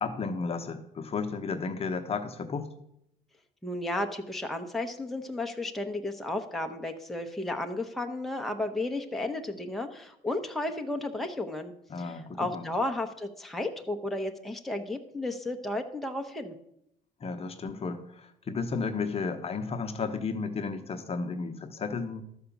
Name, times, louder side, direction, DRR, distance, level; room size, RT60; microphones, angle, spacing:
voice 1, 0.0-2.7 11.9-12.7 17.2-22.2, left 4 dB, 35° left, 6 dB, 1.0 m, -33 dB
voice 2, 3.6-11.7 12.0-16.6, left 2 dB, ahead, 3 dB, 0.9 m, -33 dB
12.0 x 5.0 x 7.1 m, 0.78 s
cardioid pair, 110°, 17 cm